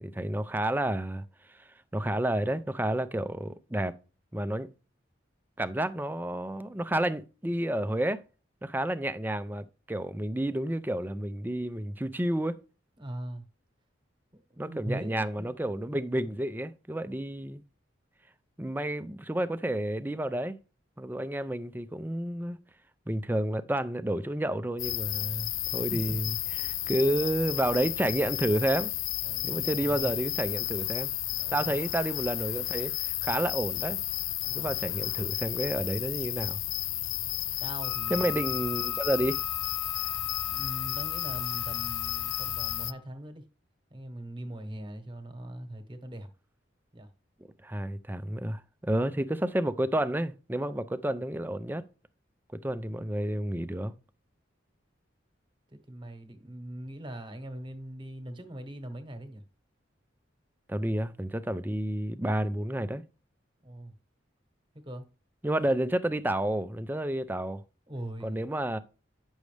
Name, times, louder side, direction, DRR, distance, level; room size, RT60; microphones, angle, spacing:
voice 1, 0.0-3.9 4.3-4.7 5.6-8.2 8.6-12.6 14.6-17.6 18.6-20.5 21.0-22.6 23.1-26.3 26.6-28.9 29.4-31.1 31.5-34.0 34.5-36.6 38.1-39.4 47.6-51.8 52.5-53.9 60.7-63.0 65.4-67.6 68.2-68.8, right 1 dB, 10° right, 0.5 m, -30 dB
voice 2, 13.0-13.4 14.3-15.5 25.7-26.2 26.8-27.0 29.2-30.2 31.3-31.9 34.4-34.7 37.6-38.3 40.4-43.4 43.9-46.3 46.9-47.1 55.7-59.4 63.6-64.0 64.7-65.1 67.9-68.4, right 1 dB, 25° right, 1.2 m, -41 dB
sound 1, 24.8-42.9, left 17 dB, 75° left, 0.4 m, -33 dB
Wind instrument woodwind instrument, 37.8-43.0, left 6 dB, 45° left, 1.2 m, -39 dB
9.5 x 6.3 x 3.3 m
head